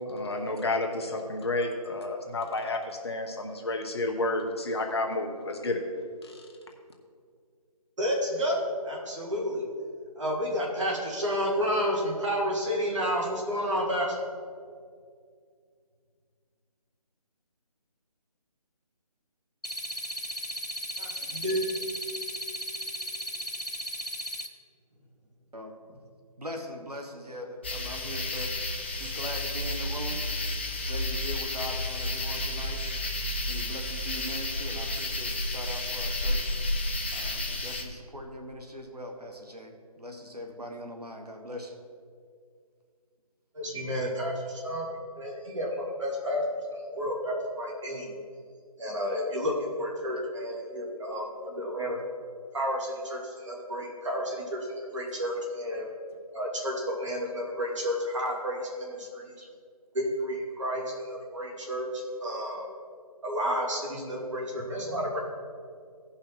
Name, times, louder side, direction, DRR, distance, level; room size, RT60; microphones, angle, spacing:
voice 1, 0.1-5.8 6.2-6.4, left 2 dB, 40° left, 2 dB, 1.1 m, -31 dB
voice 2, 8.0-9.6 10.2-14.1 21.0-21.6 43.5-44.8 45.2-46.4 46.7-48.1 48.8-52.0 52.5-54.7 54.9-55.8 56.3-59.3 59.9-62.6 63.2-65.2, equal, 50° right, -2 dB, 2.6 m, -31 dB
sound 1, 19.6-24.5, equal, 80° left, 1.0 m, -36 dB
voice 3, 26.4-28.5 29.0-30.3 30.9-32.8 33.5-36.6 37.1-41.8 44.2-44.3 50.1-50.2 59.2-59.5, equal, 80° right, 4 dB, 1.4 m, -41 dB
sound 2, 27.6-37.8, left 1 dB, 20° left, 0.5 m, -31 dB
16.0 x 5.6 x 4.5 m, 2.2 s
figure-of-eight pair, 150°, 20 cm